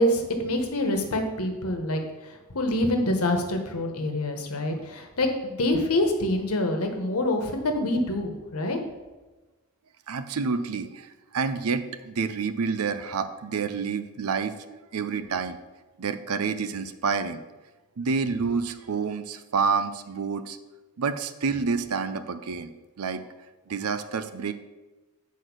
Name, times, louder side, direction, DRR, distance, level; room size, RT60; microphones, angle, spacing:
voice 1, 0.0-2.0 2.5-8.8, left 1 dB, 90° left, 4 dB, 1.2 m, -26 dB
voice 2, 10.1-15.6 16.0-17.4 18.0-20.6 21.0-22.7 23.0-23.2 23.7-24.5, right 5 dB, 90° right, 11 dB, 0.6 m, -28 dB
8.1 x 4.6 x 6.1 m, 1.2 s
head